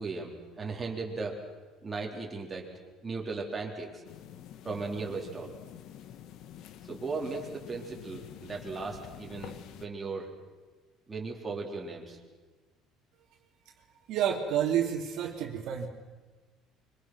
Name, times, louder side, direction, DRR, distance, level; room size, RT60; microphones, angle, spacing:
voice 1, 0.0-1.4 1.8-2.7 3.0-4.0 4.6-5.5 6.9-10.3 11.1-12.2, right 4 dB, 15° right, -2 dB, 3.7 m, -37 dB
sound 1, 4.0-9.9, left 11 dB, 60° left, 1.3 m, -48 dB
voice 2, 14.1-15.9, right 9 dB, 60° right, 1 dB, 2.8 m, -29 dB
25.5 x 24.5 x 6.3 m, 1.3 s
cardioid pair, 155°, 0 cm